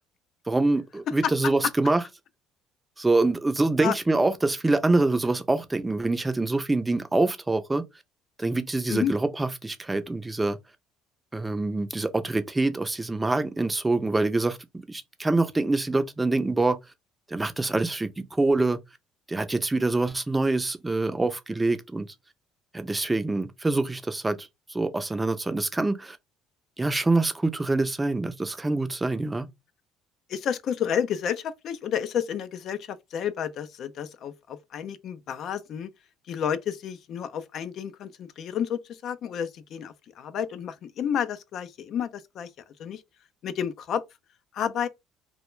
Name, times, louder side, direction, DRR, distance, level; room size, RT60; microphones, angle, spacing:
voice 1, 0.5-2.0 3.0-7.8 8.4-10.6 11.3-16.8 17.3-18.8 19.3-22.1 22.7-26.2 26.8-29.5, right 2 dB, 15° right, 0.4 m, -25 dB
voice 2, 30.3-35.9 36.3-42.5 42.8-43.0 43.4-44.0 44.5-44.9, left 8 dB, 60° left, 0.3 m, -30 dB
2.2 x 2.1 x 3.0 m
supercardioid pair, 80°, 0 cm